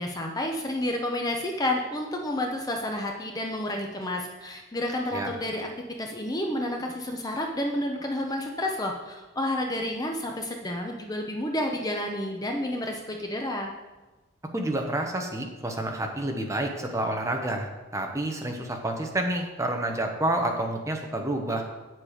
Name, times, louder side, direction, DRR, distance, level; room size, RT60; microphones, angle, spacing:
voice 1, 0.0-5.7 6.0-13.7, left 1 dB, 15° left, 2 dB, 0.7 m, -30 dB
voice 2, 14.5-17.7 17.9-21.6, right 1 dB, 15° right, 2 dB, 0.9 m, -29 dB
8.2 x 7.5 x 5.0 m, 1.2 s
head